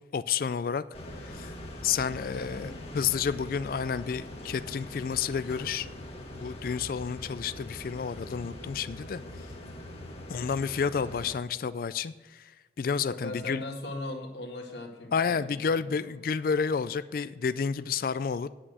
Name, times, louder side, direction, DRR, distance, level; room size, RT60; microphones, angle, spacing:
voice 1, 0.1-0.8 1.2-1.5 1.8-5.9 6.3-9.2 10.3-13.6 15.1-18.5, left 6 dB, 50° left, 14 dB, 0.3 m, -30 dB
sound 1, 0.9-11.4, left 1 dB, 35° left, 1.5 m, -42 dB
voice 2, 2.3-2.8 13.1-15.6, left 2 dB, 70° left, -1 dB, 1.9 m, -38 dB
9.8 x 6.1 x 7.9 m, 1.3 s
head